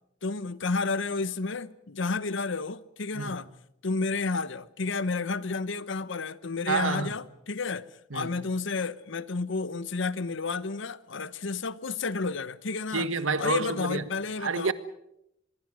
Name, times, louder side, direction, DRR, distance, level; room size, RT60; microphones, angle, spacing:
voice 1, 0.2-3.5 3.8-13.1 13.4-14.7, left 4 dB, 65° left, 0.9 m, -31 dB
voice 2, 6.7-7.1 8.1-8.3 12.9-14.0 14.4-14.7, right 4 dB, 80° right, 1.4 m, -28 dB
25.5 x 22.0 x 6.3 m
head